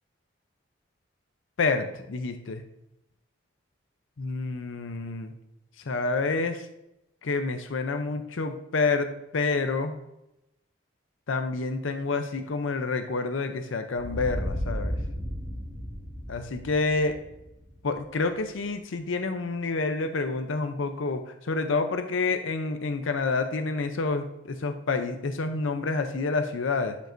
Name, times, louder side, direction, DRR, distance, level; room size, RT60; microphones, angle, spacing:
voice 1, 1.6-2.6 4.2-5.3 5.9-6.7 7.2-10.0 11.3-15.0 16.3-17.2 17.8-27.0, left 3 dB, 80° left, 8 dB, 0.6 m, -28 dB
sound 1, 14.0-18.6, equal, 10° right, 2.0 m, -34 dB
11.5 x 5.2 x 2.6 m, 0.87 s
head